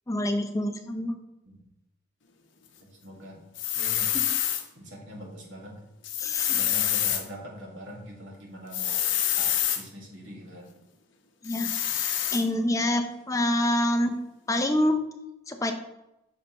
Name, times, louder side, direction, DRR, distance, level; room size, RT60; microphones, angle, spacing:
voice 1, 0.1-1.2 4.1-4.3 6.2-6.6 11.4-14.2 14.5-15.0 15.5-15.7, left 1 dB, 15° left, 5 dB, 0.6 m, -27 dB
voice 2, 2.8-3.4 3.7-4.2 4.8-5.8 6.3-10.7, equal, 60° right, -2 dB, 2.0 m, -43 dB
sound 1, 3.6-4.6 6.0-7.2 8.7-9.8 11.5-12.4, left 10 dB, 60° left, 0.9 m, -26 dB
8.9 x 5.7 x 3.0 m, 0.88 s
head